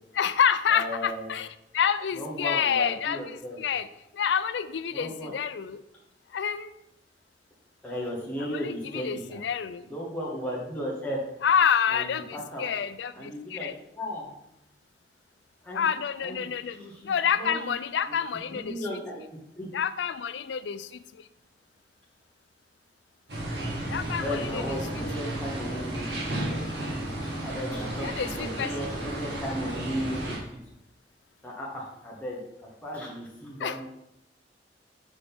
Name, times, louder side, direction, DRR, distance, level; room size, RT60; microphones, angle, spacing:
voice 1, 0.2-1.5 1.7-3.9 4.1-5.8 6.3-6.7 8.5-9.9 11.4-13.7 15.7-16.8 17.0-18.8 19.7-20.9 23.9-24.8 28.0-28.7 33.6-33.8, left 7 dB, 80° left, 14 dB, 0.4 m, -28 dB
voice 2, 0.7-1.3 2.1-3.6 4.9-5.3 7.8-9.4 9.8-11.2 11.9-12.7 13.1-13.7 14.0-14.3 15.6-15.9 16.2-17.7 18.1-18.2 18.5-19.2 19.6-19.7 24.1-26.2 26.5-26.8 27.4-30.3 31.4-32.4 32.8-33.8, equal, 10° left, -5 dB, 1.1 m, -35 dB
sound 1, 23.3-30.4, right 1 dB, 65° right, 1.6 m, -33 dB
6.2 x 5.8 x 3.5 m, 0.85 s
head